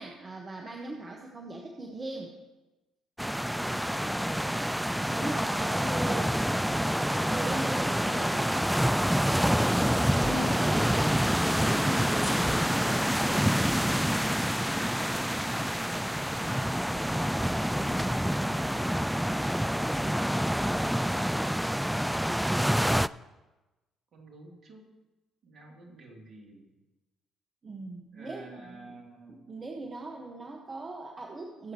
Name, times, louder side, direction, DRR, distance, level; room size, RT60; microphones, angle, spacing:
voice 1, 0.0-2.3 5.0-8.7 10.2-11.1 11.4-13.5 20.0-20.2 27.6-28.9 29.3-31.7, right 2 dB, 35° right, 1 dB, 1.6 m, -40 dB
sound 1, 3.2-23.1, equal, ahead, 0.3 m, -27 dB
voice 2, 3.7-4.7 15.1-17.2 18.1-19.5 24.1-24.9 25.4-26.7 28.1-29.4, right 2 dB, 55° right, -1 dB, 3.2 m, -51 dB
sound 2, 12.2-18.2, left 1 dB, 25° left, 1.9 m, -47 dB
21.5 x 8.0 x 3.1 m, 1.1 s
hypercardioid pair, 55°, 0 cm